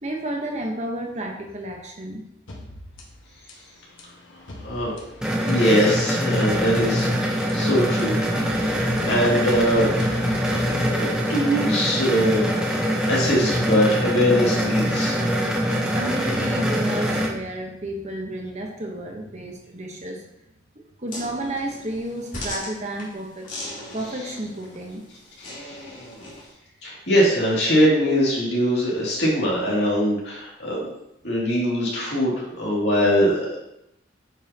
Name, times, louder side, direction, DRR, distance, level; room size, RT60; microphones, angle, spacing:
voice 1, 0.0-2.2 15.9-20.3 20.8-25.0, right 1 dB, 35° right, 1 dB, 1.0 m, -31 dB
sound 1, 2.5-11.4, left 1 dB, 85° left, 1.4 m, -41 dB
sound 2, 5.2-17.3, equal, 5° right, 0.9 m, -23 dB
voice 2, 5.4-8.2 8.7-9.9 10.5-12.4 13.0-15.2 25.4-25.8 26.8-30.9 31.2-33.6, equal, 65° left, -5 dB, 2.6 m, -22 dB
sound 3, 21.1-26.5, left 1 dB, 45° left, 2.3 m, -38 dB
8.9 x 5.6 x 2.9 m, 0.82 s
head